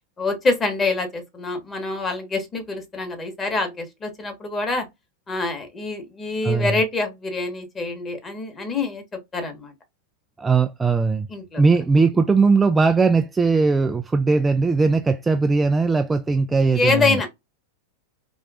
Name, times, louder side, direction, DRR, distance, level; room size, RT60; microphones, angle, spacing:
voice 1, 0.2-4.9 5.3-9.0 9.3-9.7 11.3-11.6 16.7-17.3, left 3 dB, 20° left, 1.5 m, -25 dB
voice 2, 10.4-11.3 11.6-17.2, right 4 dB, 10° right, 0.3 m, -19 dB
4.3 x 3.0 x 2.5 m
figure-of-eight pair, 90°, 0 cm